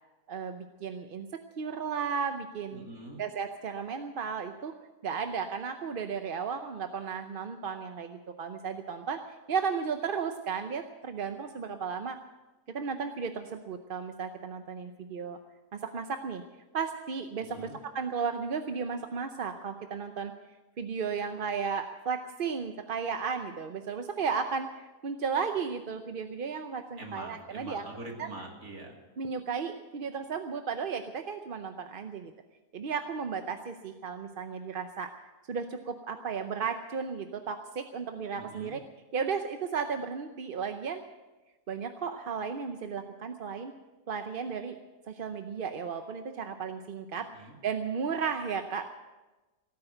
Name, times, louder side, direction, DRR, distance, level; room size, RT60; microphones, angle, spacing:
voice 1, 0.3-2.9 3.2-4.7 5.0-9.2 9.5-12.2 12.7-15.4 15.7-16.4 16.7-17.7 17.9-20.3 20.8-27.9 28.2-28.3 29.2-32.3 32.7-35.1 35.5-38.8 39.1-41.0 41.7-43.7 44.1-44.8 45.1-48.9, right 6 dB, 45° right, 7 dB, 0.8 m, -34 dB
voice 2, 2.7-3.2 17.4-17.8 27.0-28.9 38.3-38.8 47.3-47.6, right 2 dB, 90° right, 0 dB, 3.1 m, -44 dB
17.0 x 9.5 x 7.9 m, 1.1 s
omnidirectional pair, 1.5 m